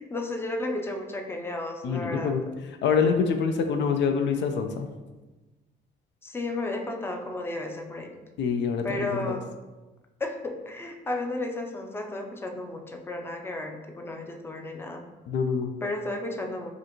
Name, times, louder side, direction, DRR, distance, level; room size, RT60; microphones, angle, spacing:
voice 1, 0.0-2.3 6.2-8.1 8.8-9.5 10.2-15.0 15.8-16.7, left 2 dB, 10° left, 3 dB, 0.5 m, -33 dB
voice 2, 1.8-2.4 2.8-4.9 8.4-9.4 15.3-15.7, left 6 dB, 70° left, 6 dB, 0.5 m, -25 dB
4.9 x 2.5 x 2.9 m, 1.1 s
cardioid pair, 90°, 19 cm